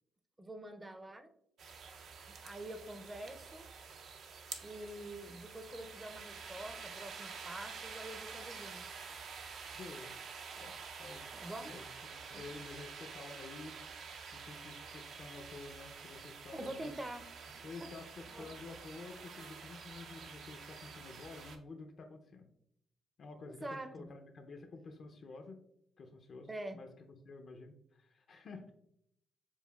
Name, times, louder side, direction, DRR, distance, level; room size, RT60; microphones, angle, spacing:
voice 1, 0.4-1.3 2.3-3.7 4.6-8.9 11.3-11.8 12.3-12.5 16.5-17.3 17.5-17.9 18.3-18.5 23.5-24.1 26.5-26.8, right 1 dB, 15° right, 9 dB, 0.5 m, -46 dB
sound 1, 1.6-21.6, right 5 dB, 70° right, 0.5 m, -49 dB
voice 2, 9.7-10.2 10.6-10.7 11.0-16.9 17.6-22.5 23.2-25.6 26.0-28.7, left 3 dB, 55° left, 4 dB, 0.5 m, -50 dB
6.8 x 2.4 x 2.3 m, 0.73 s
cardioid pair, 90°, 0 cm